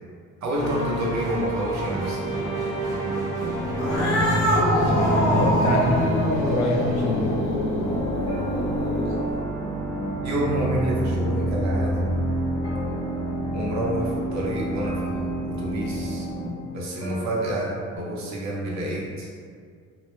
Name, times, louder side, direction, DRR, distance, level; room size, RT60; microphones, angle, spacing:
voice 1, 0.4-2.2 10.2-12.1 13.5-16.3 16.7-19.3, right 1 dB, 65° right, -4 dB, 0.7 m, -28 dB
sound 1, 0.5-9.9 10.2-11.6 12.6-13.7 14.8-15.6 17.0-18.0, right 2 dB, 10° right, 0.8 m, -32 dB
sound 2, 3.4-16.5, equal, 5° left, 0.4 m, -28 dB
Cat, 3.7-9.3, left 1 dB, 60° left, 0.9 m, -26 dB
voice 2, 4.7-7.3, left 1 dB, 75° left, 0 dB, 0.5 m, -26 dB
2.2 x 2.1 x 2.9 m, 2.1 s
cardioid pair, 90°, 30 cm